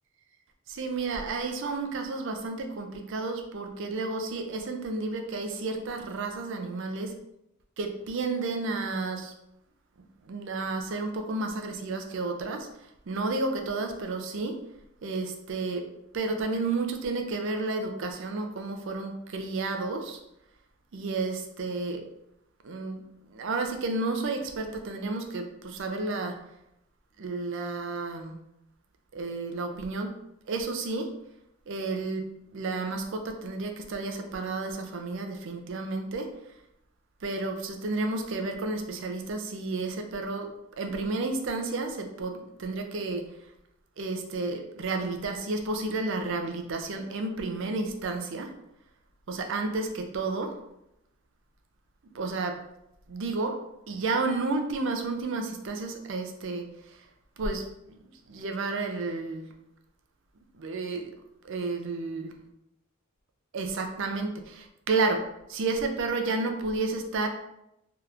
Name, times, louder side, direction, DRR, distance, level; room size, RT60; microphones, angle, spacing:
voice 1, 0.7-7.1 7.8-9.3 10.3-12.7 13.1-14.6 15.0-15.8 16.1-20.2 20.9-22.0 22.6-23.0 23.3-26.4 27.2-28.4 29.1-30.1 30.5-31.1 31.7-32.3 32.5-36.3 37.2-40.5 40.8-43.2 44.0-48.5 49.3-50.5 52.1-52.6 53.1-53.6 53.9-56.6 57.4-57.6 58.3-59.5 60.6-61.1 61.4-62.3 63.5-67.3, right 3 dB, 55° right, 5 dB, 0.4 m, -31 dB
3.3 x 2.8 x 2.4 m, 0.83 s
head